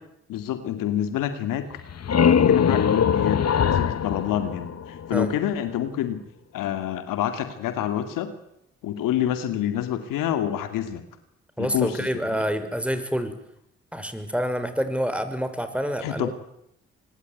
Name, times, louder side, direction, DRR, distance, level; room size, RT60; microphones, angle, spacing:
voice 1, 0.3-1.7 2.1-6.2 6.5-8.3 8.8-11.0 11.6-12.4 16.0-16.3, left 10 dB, 85° left, 9 dB, 2.3 m, -27 dB
sound 1, 1.7-5.4, left 7 dB, 50° left, 1.2 m, -22 dB
voice 2, 11.6-13.3 13.9-16.3, equal, 5° right, 10 dB, 5.7 m, -27 dB
25.0 x 20.5 x 9.6 m, 0.78 s
hypercardioid pair, 45°, 32 cm